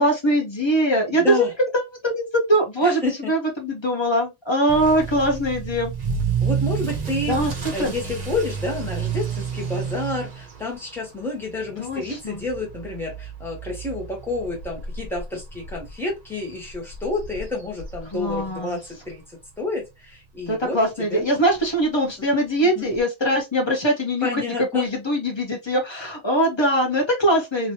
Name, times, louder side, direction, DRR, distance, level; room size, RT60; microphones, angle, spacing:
voice 1, 0.0-1.5 1.7-5.9 7.3-7.9 11.8-12.4 18.1-18.8 20.5-27.7, right 1 dB, 25° left, 1.1 m, -22 dB
voice 2, 1.1-1.5 2.8-3.3 6.4-7.4 7.7-20.8 21.1-21.2 22.6-22.9 24.2-24.9, left 2 dB, ahead, 1.4 m, -29 dB
Motor vehicle (road) / Accelerating revving vroom, 4.7-19.5 19.8-20.2 20.7-20.8 21.1-21.2 21.5-21.6 22.9-23.0, right 6 dB, 45° right, 0.9 m, -31 dB
3.1 x 3.1 x 2.7 m
omnidirectional pair, 1.1 m